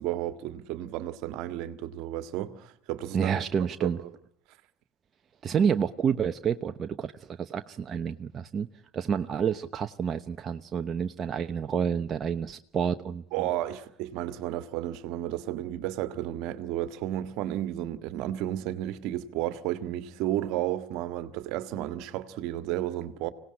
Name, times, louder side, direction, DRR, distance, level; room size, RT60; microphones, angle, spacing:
voice 1, 0.0-3.3 3.8-4.0 13.3-23.3, right 13 dB, 65° right, 1.8 m, -32 dB
voice 2, 3.1-4.0 5.4-8.7 8.9-13.5, right 7 dB, 35° right, 1.0 m, -29 dB
26.0 x 18.5 x 9.9 m
hypercardioid pair, 80°, 0 cm